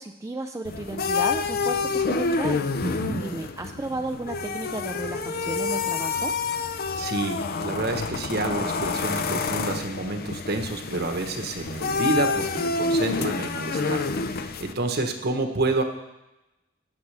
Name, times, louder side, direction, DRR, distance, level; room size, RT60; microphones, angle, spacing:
voice 1, 0.0-2.7 3.2-6.4, right 2 dB, 15° right, 4 dB, 0.3 m, -33 dB
sound 1, 0.6-14.7, left 4 dB, 50° left, 0.5 m, -28 dB
voice 2, 2.8-3.2 7.0-15.8, right 2 dB, 55° right, 5 dB, 1.1 m, -29 dB
17.0 x 6.7 x 3.4 m, 0.95 s
head